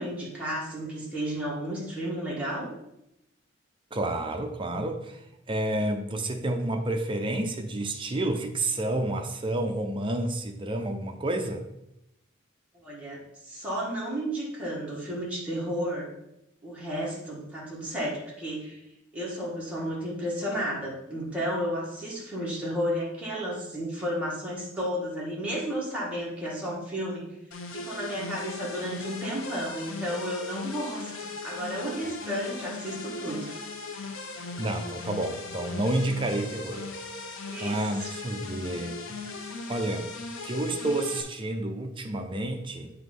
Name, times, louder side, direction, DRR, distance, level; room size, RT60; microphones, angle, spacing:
voice 1, 0.0-2.7 12.7-16.1 16.6-18.8 19.1-27.2 27.7-33.5 37.5-38.1, equal, 5° right, -6 dB, 1.8 m, -32 dB
voice 2, 3.9-5.2 5.5-11.6 34.6-36.9 37.6-39.2 39.7-40.1 40.4-42.9, right 1 dB, 25° right, 5 dB, 0.6 m, -30 dB
sound 1, 27.5-41.2, left 3 dB, 90° left, 0.8 m, -38 dB
7.9 x 3.0 x 5.4 m, 0.85 s
head